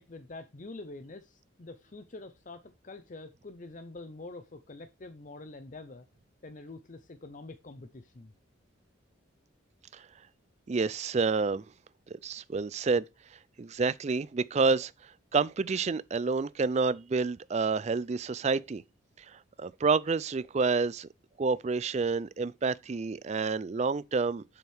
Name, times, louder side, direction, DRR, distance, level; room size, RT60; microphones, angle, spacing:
voice 1, 0.0-6.1 6.4-8.3, left 2 dB, 40° left, 0.6 m, -46 dB
voice 2, 10.7-11.6 12.2-13.0 13.6-14.9 15.3-18.8 19.2-19.3 19.6-21.1 21.4-24.4, right 4 dB, 30° right, 0.3 m, -28 dB
7.8 x 7.1 x 3.5 m
head